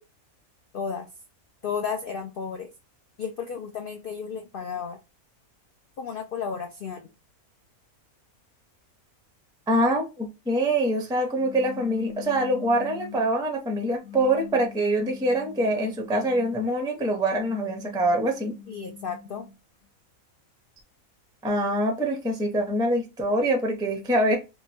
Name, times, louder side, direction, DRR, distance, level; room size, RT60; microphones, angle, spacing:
voice 1, 0.7-1.1 1.6-2.7 3.2-5.0 6.0-7.1 18.7-19.5, left 6 dB, 85° left, 0.4 m, -33 dB
voice 2, 9.7-18.5 21.4-24.4, right 1 dB, 5° right, 0.3 m, -24 dB
sound 1, 11.4-13.4 14.0-16.7 17.3-19.6, left 10 dB, 65° left, 1.0 m, -43 dB
2.8 x 2.2 x 4.1 m
omnidirectional pair, 1.5 m